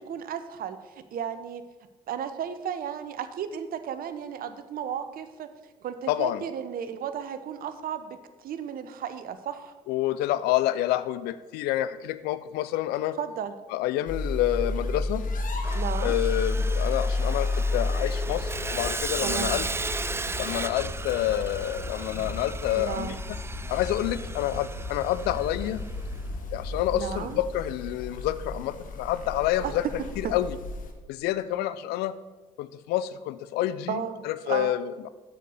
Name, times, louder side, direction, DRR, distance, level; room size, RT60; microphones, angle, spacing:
voice 1, 0.1-1.6 2.1-5.5 5.8-9.7 13.2-13.6 15.7-16.2 19.2-19.6 22.8-23.2 26.9-27.4 29.6-29.9 30.2-30.3 33.9-34.8, right 8 dB, 55° right, 11 dB, 0.8 m, -34 dB
voice 2, 6.1-6.4 9.9-13.2 13.7-15.3 16.0-19.7 20.4-23.2 23.7-25.8 26.5-29.8 30.2-30.6 31.1-32.1 32.6-35.1, left 13 dB, 70° left, 14 dB, 0.5 m, -28 dB
sound 1, 14.1-30.9, left 2 dB, 50° left, 1.3 m, -33 dB
Sawing, 15.6-25.9, right 3 dB, 15° right, 0.4 m, -36 dB
sound 2, 18.3-28.3, left 3 dB, 30° left, 1.9 m, -40 dB
7.5 x 6.5 x 6.7 m, 1.2 s
hypercardioid pair, 50°, 17 cm